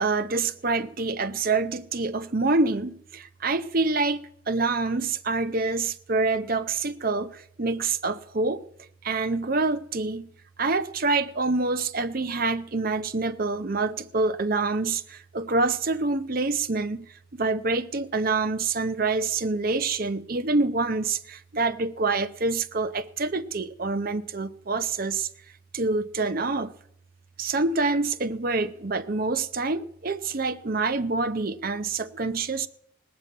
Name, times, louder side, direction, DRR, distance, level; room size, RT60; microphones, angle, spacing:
voice 1, 0.0-8.6 9.0-10.3 10.6-25.3 25.7-26.7 27.4-32.7, right 3 dB, 45° right, 0.7 m, -26 dB
18.5 x 6.8 x 8.6 m
head